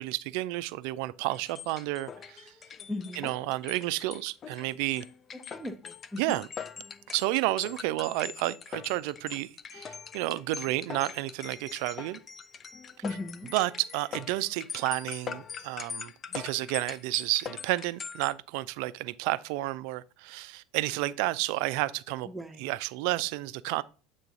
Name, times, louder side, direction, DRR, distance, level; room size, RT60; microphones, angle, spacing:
voice 1, 0.0-2.5 3.2-5.1 6.2-6.5 7.1-12.2 13.5-22.3 22.6-23.8, right 18 dB, 60° right, 0.3 m, -31 dB
sound 1, 1.3-18.3, left 6 dB, 35° left, 0.4 m, -42 dB
voice 2, 2.9-3.3 5.5-6.2 13.0-13.5 22.2-22.7, left 2 dB, 5° right, 0.8 m, -37 dB
8.0 x 3.7 x 3.8 m
hypercardioid pair, 75°, 0 cm